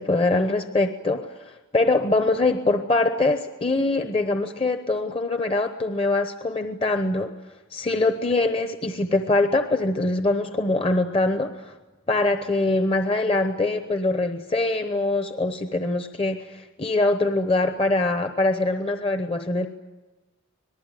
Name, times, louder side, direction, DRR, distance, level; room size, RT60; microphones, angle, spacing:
voice 1, 0.0-7.3 7.7-11.7 12.1-19.7, left 2 dB, 25° left, 7 dB, 0.9 m, -23 dB
26.0 x 19.5 x 9.1 m, 1.2 s
head